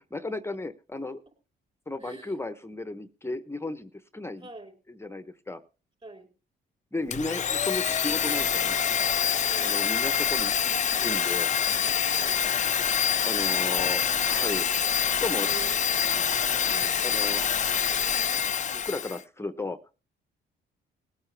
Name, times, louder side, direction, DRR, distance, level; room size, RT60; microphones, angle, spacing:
voice 1, 0.1-1.2 1.9-4.5 4.9-5.6 6.9-8.8 9.6-11.5 13.3-14.0 14.3-14.7 15.1-15.5 17.0-17.4 18.1-18.3 18.7-19.9, left 2 dB, 10° left, 12 dB, 0.9 m, -34 dB
voice 2, 2.0-2.3 4.4-4.7 6.0-6.3 9.5-9.8 12.2-12.5 13.6-14.5 15.4-15.7 16.0-17.1, right 3 dB, 30° right, 5 dB, 4.8 m, -46 dB
Domestic sounds home sounds, 7.1-19.2, left 8 dB, 35° left, 0.5 m, -26 dB
sound 1, 11.6-18.5, right 8 dB, 55° right, 0.7 m, -46 dB
19.5 x 8.9 x 3.3 m, 0.31 s
cardioid pair, 90°, 20 cm